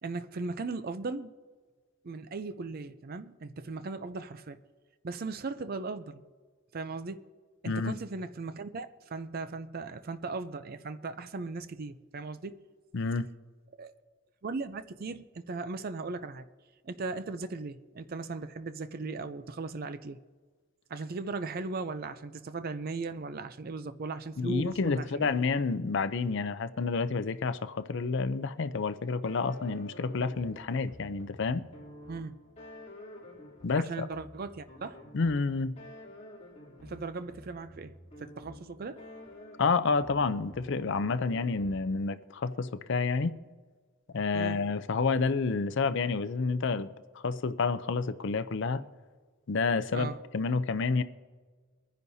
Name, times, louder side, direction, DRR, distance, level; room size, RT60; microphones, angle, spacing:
voice 1, 0.0-1.3 2.0-4.6 5.0-6.2 6.7-7.3 7.6-12.7 13.8-13.9 14.4-16.5 16.8-20.2 20.9-25.3 32.1-32.3 33.7-35.0 36.8-39.0 44.3-44.6 49.9-50.2, right 3 dB, 45° right, 0.5 m, -38 dB
voice 2, 7.7-8.0 12.9-13.3 24.4-31.6 33.6-34.1 35.1-35.7 39.6-43.3 44.1-48.8 49.5-51.0, left 4 dB, 60° left, 0.5 m, -29 dB
sound 1, 29.2-42.1, left 1 dB, 30° left, 2.9 m, -50 dB
24.0 x 10.0 x 2.7 m
head